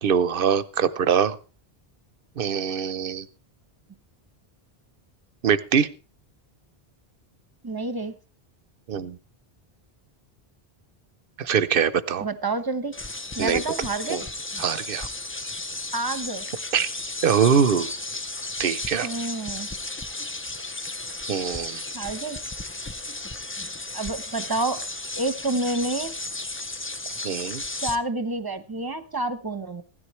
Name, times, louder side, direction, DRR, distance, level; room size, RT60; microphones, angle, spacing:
voice 1, 0.0-1.4 2.4-3.3 5.4-5.9 8.9-9.2 11.4-12.3 13.4-13.6 14.1-14.2 14.6-15.1 16.7-16.9 17.2-17.9 18.6-19.1 21.3-21.8 27.2-27.6, right 7 dB, 65° right, 15 dB, 0.9 m, -23 dB
voice 2, 7.6-8.1 12.2-13.0 13.4-14.2 15.9-16.4 19.0-19.7 21.9-22.4 23.9-24.8 25.2-26.1 27.8-29.8, right 2 dB, 25° right, 10 dB, 1.0 m, -28 dB
sound 1, 12.9-28.0, left 2 dB, 20° left, 0.4 m, -34 dB
16.0 x 13.0 x 3.2 m, 0.36 s
omnidirectional pair, 1.0 m